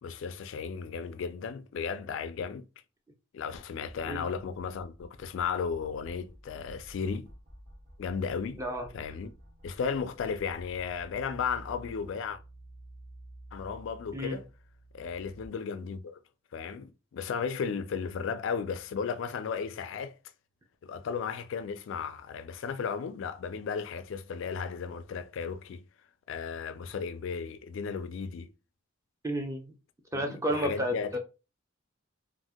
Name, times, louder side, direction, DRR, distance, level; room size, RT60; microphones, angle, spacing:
voice 1, 0.0-2.7 3.3-7.3 8.0-8.6 8.9-9.3 9.6-12.4 13.5-14.5 14.9-16.2 16.5-20.1 20.8-25.8 26.3-28.5 30.1-31.1, left 6 dB, 70° left, 0.3 m, -35 dB
sound 1, 3.9-15.5, right 1 dB, 40° right, 1.2 m, -51 dB
voice 2, 8.6-8.9 14.1-14.4 29.2-29.7 30.1-31.2, equal, 15° right, 0.5 m, -31 dB
2.6 x 2.1 x 3.4 m
head